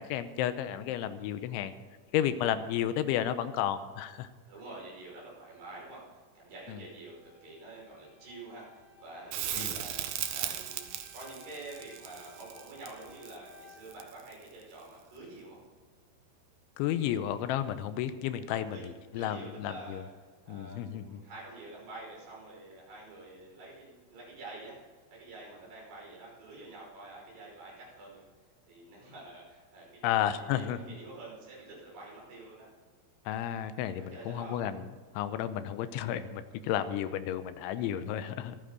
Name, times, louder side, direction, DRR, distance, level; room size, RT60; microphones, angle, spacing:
voice 1, 0.0-1.7 2.1-4.3 6.7-6.8 9.6-9.7 16.8-20.0 20.5-21.2 30.0-30.8 33.3-34.9 35.1-38.6, left 11 dB, 85° left, 11 dB, 3.1 m, -32 dB
voice 2, 4.5-15.6 18.5-18.9 19.1-20.1 20.5-24.8 25.1-28.2 28.7-32.7 33.9-34.6, right 2 dB, 60° right, -4 dB, 7.8 m, -48 dB
sound 1, 6.7-13.9, left 4 dB, 15° right, 5.8 m, -58 dB
Crackle, 9.3-14.4 17.2-17.3, right 11 dB, 75° right, 2.1 m, -37 dB
25.0 x 9.8 x 4.0 m, 1.5 s
omnidirectional pair, 5.5 m